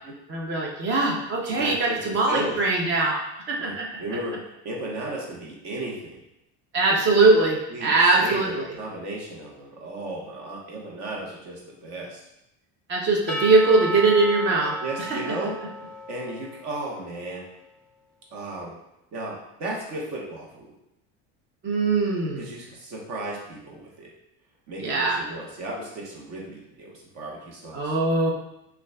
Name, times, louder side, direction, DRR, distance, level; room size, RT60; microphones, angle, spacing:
voice 1, 0.3-3.2 3.5-3.9 6.7-8.6 12.9-14.7 15.1-15.3 21.6-22.4 24.8-25.2 27.7-28.3, right 3 dB, 35° right, 0 dB, 0.8 m, -21 dB
voice 2, 1.4-2.6 3.6-6.2 7.7-12.2 14.8-15.6 16.1-17.5 18.3-18.7 19.1-20.7 22.4-24.1 24.7-27.9, right 1 dB, 55° right, -2 dB, 1.2 m, -35 dB
Percussion / Church bell, 13.3-17.1, right 2 dB, 5° left, 0.5 m, -34 dB
5.8 x 2.5 x 2.3 m, 0.86 s
cardioid pair, 140°, 34 cm